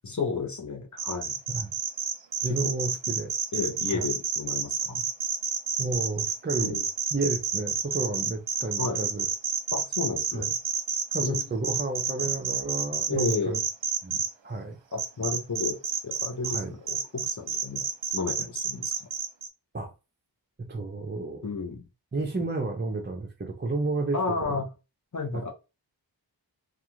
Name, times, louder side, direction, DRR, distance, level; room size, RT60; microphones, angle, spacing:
voice 1, 0.0-1.4 2.6-2.7 3.5-5.0 6.6-6.8 8.8-9.0 9.7-10.5 11.2-11.6 13.1-13.6 14.9-15.8 16.0-16.6 16.9-17.8 18.1-18.9 21.4-21.8 24.1-24.7 25.1-25.5, left 4 dB, 40° left, 0.8 m, -32 dB
sound 1, 1.0-14.3 15.0-16.6 16.9-19.5, right 6 dB, 70° right, 0.6 m, -29 dB
voice 2, 2.4-3.3 3.9-4.0 5.8-6.8 7.1-9.3 10.3-10.5 11.1-13.6 14.0-14.8 16.4-16.7 19.7-19.9 20.6-21.4 22.1-24.6 25.3-25.5, right 3 dB, 25° right, 0.5 m, -31 dB
2.4 x 2.4 x 3.0 m
wide cardioid pair, 60°, 46 cm